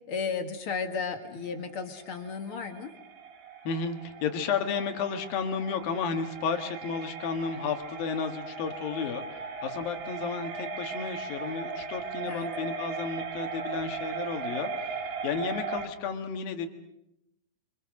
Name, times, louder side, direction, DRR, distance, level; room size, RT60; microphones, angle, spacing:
voice 1, 0.1-3.0 12.2-12.5, left 5 dB, 45° left, 6 dB, 2.1 m, -34 dB
sound 1, 1.2-15.9, right 5 dB, 65° right, 4.0 m, -38 dB
voice 2, 3.6-16.7, left 6 dB, 70° left, 6 dB, 3.4 m, -32 dB
29.0 x 25.5 x 6.5 m, 0.86 s
omnidirectional pair, 4.5 m